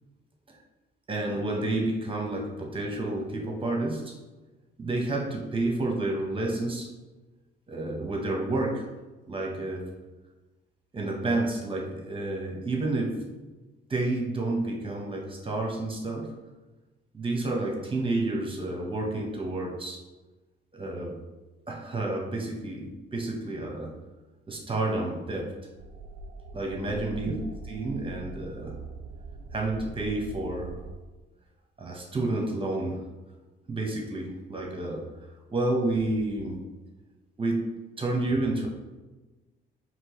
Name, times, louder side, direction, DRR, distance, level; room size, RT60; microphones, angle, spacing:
voice 1, 1.1-4.1 4.8-6.9 7.7-8.8 9.3-9.8 10.9-13.2 13.9-16.3 17.1-20.0 20.7-21.2 21.7-23.9 24.5-25.5 26.5-27.3 27.6-28.8 29.5-30.8 31.8-33.0 33.7-36.6 37.4-37.7 38.0-38.7, right 2 dB, 25° right, -1 dB, 1.1 m, -30 dB
sound 1, 25.8-31.0, right 3 dB, 65° right, 0.4 m, -42 dB
4.5 x 3.1 x 3.1 m, 1.2 s
cardioid pair, 90°, 20 cm